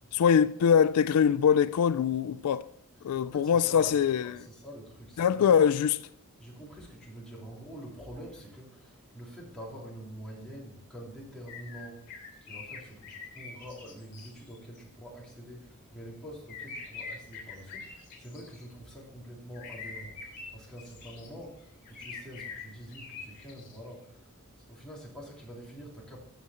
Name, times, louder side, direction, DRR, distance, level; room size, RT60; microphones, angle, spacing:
voice 1, 0.1-2.7 3.0-4.5 5.2-6.0, left 7 dB, 85° left, 0.4 m, -23 dB
voice 2, 2.9-5.5 6.4-12.0 12.4-26.2, equal, 5° left, 3.0 m, -46 dB
sound 1, 11.5-14.8 16.5-18.7 19.5-21.3 21.8-23.8, left 5 dB, 50° left, 3.2 m, -44 dB
14.5 x 5.1 x 4.2 m
head